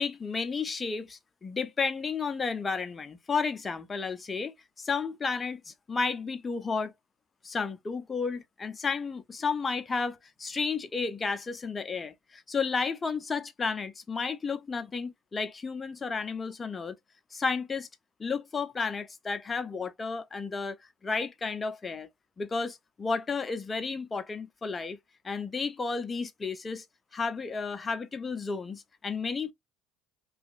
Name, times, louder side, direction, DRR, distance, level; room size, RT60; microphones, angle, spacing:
voice 1, 0.0-6.9 7.4-16.9 17.3-17.9 18.2-20.8 21.0-22.1 22.4-25.0 25.2-26.8 27.1-29.5, left 4 dB, 25° left, 0.6 m, -32 dB
2.6 x 2.4 x 2.4 m
hypercardioid pair, 70°, 0 cm